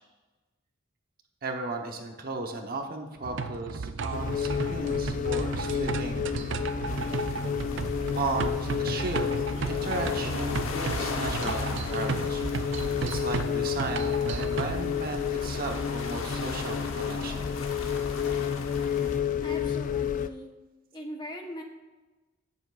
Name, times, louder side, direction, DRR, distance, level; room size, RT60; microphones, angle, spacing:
voice 1, 1.4-6.2 8.1-9.3 9.7-17.5, right 2 dB, 45° right, 3 dB, 1.0 m, -35 dB
sound 1, 3.2-14.8, right 4 dB, 60° right, 0.5 m, -34 dB
sound 2, 4.1-20.3, left 7 dB, 40° left, 0.3 m, -31 dB
sound 3, 6.9-19.2, left 3 dB, 90° left, 1.0 m, -40 dB
voice 2, 19.4-20.5 20.9-21.6, equal, 20° left, 2 dB, 1.0 m, -40 dB
18.5 x 7.1 x 2.5 m, 1.2 s
head